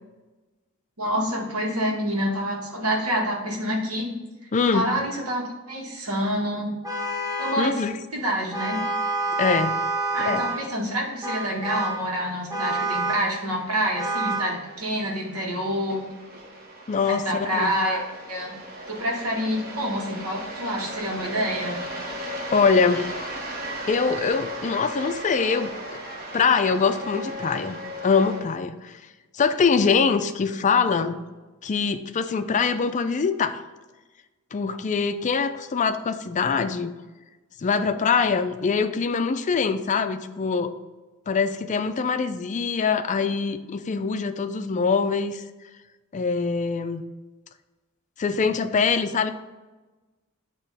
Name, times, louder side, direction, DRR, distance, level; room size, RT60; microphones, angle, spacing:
voice 1, 1.0-4.1 4.7-6.7 7.4-7.8 8.1-8.8 10.1-16.0 17.1-18.0 18.3-18.5 18.9-21.8, equal, 90° right, -3 dB, 1.7 m, -27 dB
voice 2, 4.5-4.9 7.6-7.9 9.4-9.8 10.2-10.6 16.9-17.3 17.5-17.8 22.5-23.2 23.9-26.0 26.3-29.0 29.3-31.2 31.6-33.6 34.5-36.9 37.6-40.7 41.3-45.4 46.1-47.0 48.2-49.3, left 5 dB, 35° left, 10 dB, 0.4 m, -23 dB
Vehicle horn car horn honking, 6.8-7.7 8.5-10.7 11.2-12.1 12.5-13.4 14.0-14.6, right 2 dB, 15° right, 0.7 m, -28 dB
sound 1, 10.1-28.4, equal, 40° right, 1.0 m, -37 dB
8.7 x 3.0 x 4.1 m, 1.2 s
head